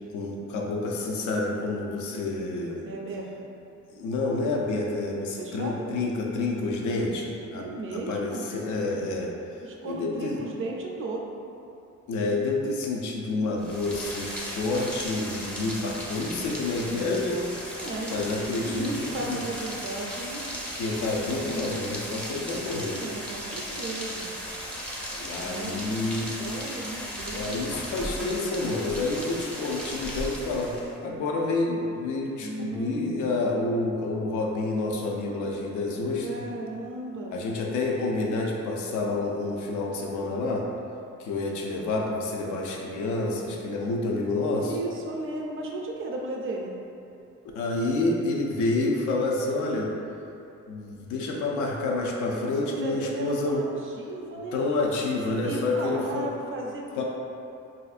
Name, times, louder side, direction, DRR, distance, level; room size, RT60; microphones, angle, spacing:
voice 1, 0.1-2.9 3.9-9.3 9.8-10.4 12.1-17.5 18.1-19.4 20.8-23.0 25.2-26.3 27.3-36.4 37.3-40.7 41.2-44.7 47.5-49.9 50.7-53.6 54.5-56.3 57.0-57.1, left 2 dB, 75° left, -1 dB, 0.5 m, -28 dB
voice 2, 2.8-3.5 5.4-5.9 7.5-8.5 9.6-11.2 16.1-17.2 17.8-20.4 22.9-24.3 25.4-27.6 32.4-33.0 33.4-33.5 36.2-37.4 44.6-46.7 52.3-54.6 55.0-57.0, right 2 dB, 45° right, -1 dB, 0.5 m, -36 dB
Rain, 13.6-31.0, equal, 5° left, 0.5 m, -36 dB
3.3 x 2.5 x 2.4 m, 2.6 s
cardioid pair, 90°, 30 cm